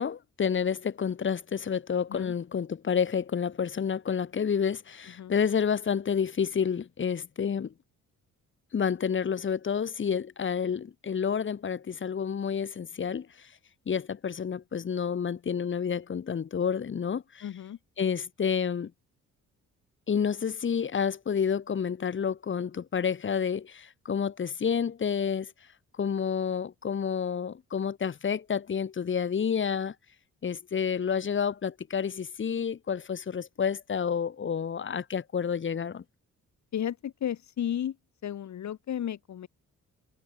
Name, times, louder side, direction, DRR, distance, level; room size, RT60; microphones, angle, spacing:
voice 1, 0.0-7.7 8.7-13.3 13.9-17.5 18.0-18.9 20.1-25.5 26.0-29.9 30.4-36.0, left 7 dB, 40° left, 1.7 m, -29 dB
voice 2, 17.4-17.8 36.7-38.0 38.2-39.5, left 10 dB, 65° left, 5.6 m, -33 dB
cardioid pair, 105°, 30 cm